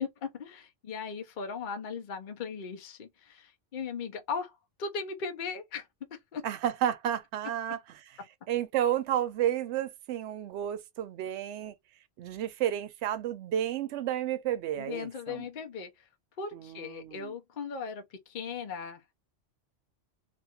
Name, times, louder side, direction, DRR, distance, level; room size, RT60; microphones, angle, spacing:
voice 1, 0.0-6.4 14.8-16.1 16.4-19.2, left 5 dB, 50° left, 0.7 m, -38 dB
voice 2, 6.4-7.8 8.5-11.7 12.2-15.4 16.5-17.3, right 11 dB, 75° right, 0.8 m, -31 dB
2.5 x 2.3 x 2.7 m
omnidirectional pair, 1.2 m